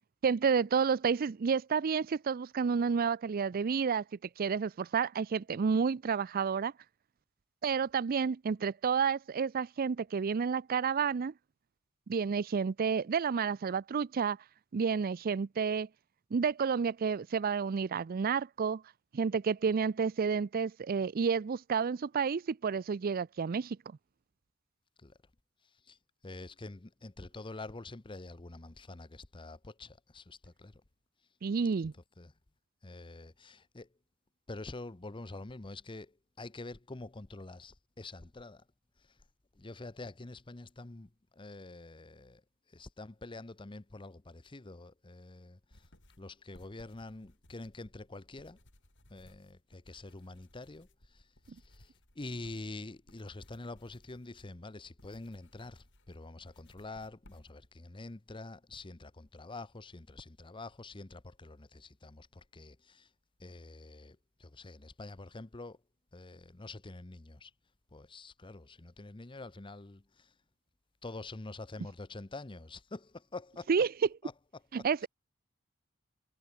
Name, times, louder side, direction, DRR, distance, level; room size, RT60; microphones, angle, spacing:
voice 1, 0.2-4.0 4.4-6.7 7.6-11.3 12.1-14.4 14.7-15.9 16.3-18.8 19.1-23.8 31.4-31.9 73.7-73.9 74.7-75.1, right 6 dB, 45° right, 0.4 m, -30 dB
voice 2, 26.2-30.8 32.2-32.3 32.8-33.9 34.5-38.6 39.6-42.4 42.7-45.6 46.2-48.6 49.1-50.9 51.1-51.2 51.5-51.9 52.2-63.1 63.4-65.8 66.1-67.5 67.9-70.3 71.0-73.7 74.2-74.3 74.8-75.1, left 2 dB, 25° left, 0.8 m, -46 dB
sound 1, 45.7-57.8, left 1 dB, 60° left, 7.8 m, -63 dB
head